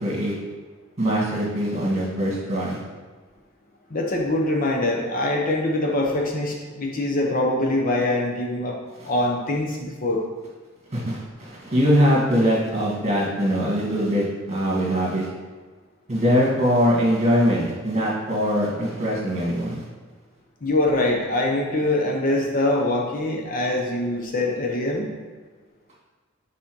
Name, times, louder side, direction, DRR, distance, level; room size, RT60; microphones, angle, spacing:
voice 1, 0.0-0.3 1.0-2.8 9.0-9.1 10.9-15.3 16.1-19.8, equal, 35° right, -4 dB, 1.9 m, -22 dB
voice 2, 3.9-8.8 9.0-10.2 20.6-25.1, left 1 dB, 45° left, 0 dB, 0.8 m, -23 dB
6.1 x 4.2 x 4.5 m, 1.4 s
head